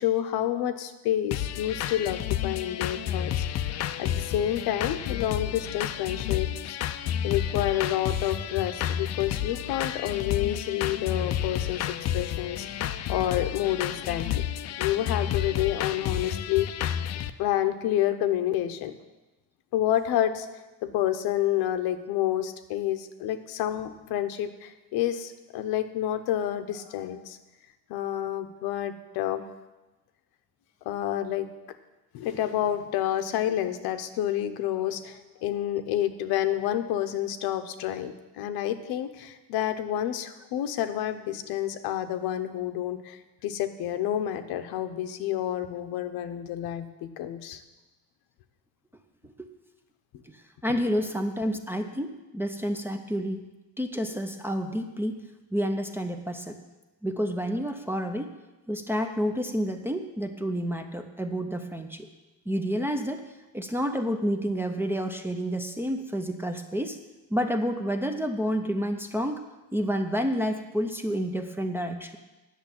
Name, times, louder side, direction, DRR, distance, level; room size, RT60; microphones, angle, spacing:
voice 1, 0.0-3.5 4.0-6.8 7.2-14.5 14.8-16.9 17.4-18.9 19.7-20.5 20.8-27.4 27.9-29.5 30.8-31.5 32.1-47.6, left 12 dB, 90° left, 8 dB, 1.0 m, -29 dB
sound 1, 1.3-17.3, left 10 dB, 45° left, 0.5 m, -31 dB
voice 2, 50.6-53.5 53.8-56.6 57.0-58.3 58.7-62.1 62.5-63.2 63.5-67.0 67.3-69.4 69.7-72.2, equal, 5° right, 5 dB, 0.5 m, -29 dB
10.5 x 6.8 x 8.8 m, 1.1 s
cardioid pair, 175°, 36 cm